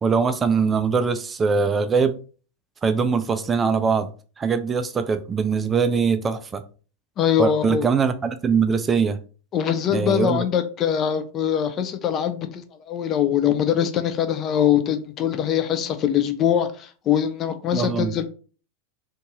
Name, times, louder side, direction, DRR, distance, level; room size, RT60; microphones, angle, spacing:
voice 1, 0.0-2.2 2.8-4.1 4.4-6.6 7.4-9.2 9.9-10.4 17.7-18.1, right 5 dB, 20° right, 0.3 m, -22 dB
voice 2, 7.2-7.9 9.5-18.2, left 9 dB, 35° left, 0.6 m, -22 dB
2.7 x 2.7 x 3.6 m
figure-of-eight pair, 90°, 0 cm